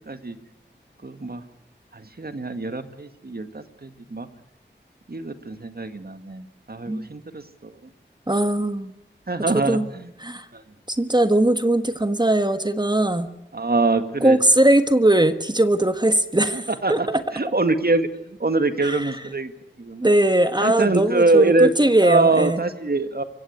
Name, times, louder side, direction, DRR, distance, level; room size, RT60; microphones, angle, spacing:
voice 1, 0.1-0.4 1.0-1.4 1.9-4.3 5.1-7.7 9.3-10.1 10.5-10.6 13.5-14.4 16.5-17.1 17.3-19.5 19.8-20.1 20.6-21.7 22.0-23.2, right 3 dB, 55° right, 9 dB, 2.0 m, -23 dB
voice 2, 8.3-8.9 9.5-9.8 10.2-10.4 10.9-13.3 14.2-17.2 18.8-19.1 20.0-22.6, right 1 dB, 20° right, 10 dB, 1.5 m, -20 dB
24.5 x 16.0 x 8.1 m, 0.86 s
wide cardioid pair, 50°, 19 cm